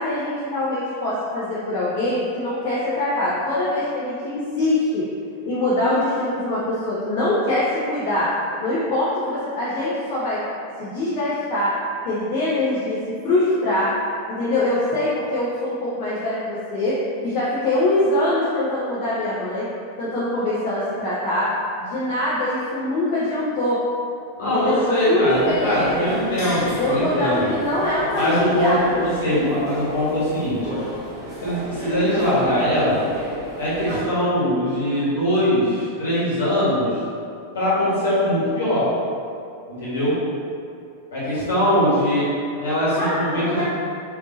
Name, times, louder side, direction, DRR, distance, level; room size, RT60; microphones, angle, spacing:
voice 1, 0.0-5.0 5.5-8.3 8.6-10.4 10.8-11.7 12.0-13.0 13.2-13.9 14.3-16.9 17.2-19.7 20.0-21.5 21.8-23.8 24.4-26.2 26.8-29.1 43.0-43.6, left 1 dB, 45° left, -10 dB, 0.6 m, -23 dB
voice 2, 24.3-27.5 28.1-30.8 31.4-33.0 33.6-37.0 37.5-38.9 39.7-40.2 41.1-42.3 42.6-43.6, equal, 65° left, -10 dB, 1.4 m, -21 dB
sound 1, 25.3-34.0, equal, 30° left, 1.3 m, -32 dB
3.4 x 2.7 x 2.6 m, 2.5 s
figure-of-eight pair, 90°, 0 cm